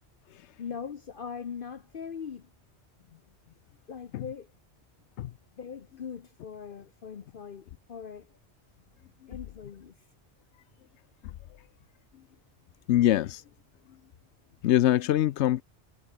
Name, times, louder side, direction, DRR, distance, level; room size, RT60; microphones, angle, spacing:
voice 1, 0.6-2.5 3.9-4.5 5.6-8.4 9.3-10.0, left 7 dB, 55° left, 1.0 m, -41 dB
voice 2, 12.9-13.4 14.6-15.6, left 13 dB, 85° left, 0.9 m, -23 dB
omnidirectional pair, 1.1 m